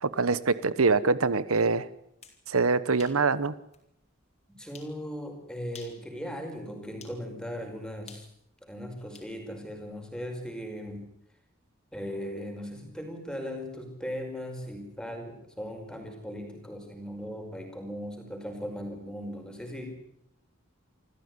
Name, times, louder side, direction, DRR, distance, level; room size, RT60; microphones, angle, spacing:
voice 1, 0.0-1.9 2.5-3.5, right 4 dB, 80° right, 16 dB, 1.0 m, -24 dB
sound 1, 2.0-2.4 3.0-3.2 3.7-3.8 4.7-5.0 5.6-6.0 7.0-7.2 8.1-9.3, left 6 dB, 30° left, 4.0 m, -50 dB
voice 2, 4.5-8.3 8.7-11.0 11.9-19.9, equal, 5° left, 4 dB, 5.3 m, -38 dB
26.5 x 15.0 x 9.7 m, 0.75 s
head